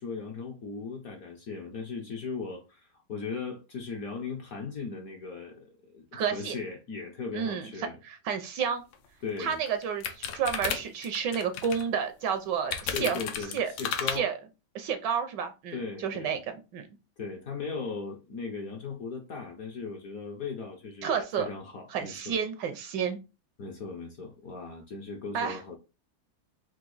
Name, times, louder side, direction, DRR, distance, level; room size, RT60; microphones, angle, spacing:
voice 1, 0.0-8.0 9.2-9.6 12.9-14.3 15.7-16.4 17.2-22.4 23.6-25.8, left 4 dB, 60° left, 1.0 m, -38 dB
voice 2, 6.1-6.5 7.3-7.7 8.0-8.8 9.4-13.2 13.5-13.7 14.1-14.4 14.7-16.4 16.7-16.9 21.0-21.5 21.9-23.2 25.3-25.6, right 7 dB, 75° right, 1.2 m, -30 dB
sound 1, 8.9-9.0 9.4-11.8 12.7-14.2, left 7 dB, 75° left, 1.4 m, -33 dB
4.9 x 2.6 x 3.9 m
omnidirectional pair, 2.2 m